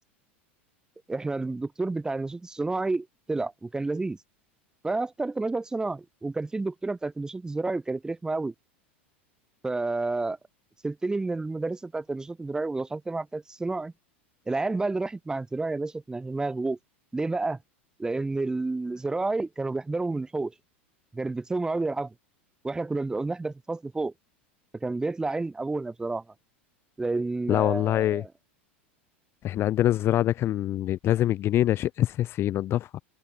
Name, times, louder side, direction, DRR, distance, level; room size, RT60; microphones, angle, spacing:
voice 1, 1.1-4.2 4.8-8.5 9.6-10.4 10.8-13.9 14.5-16.8 17.1-17.6 18.0-20.5 21.1-22.1 22.6-24.1 24.8-26.2 27.0-28.3, right 3 dB, 10° right, 3.4 m, -30 dB
voice 2, 27.5-28.2 29.4-33.0, left 13 dB, 40° left, 1.2 m, -24 dB
hypercardioid pair, 105°, 6 cm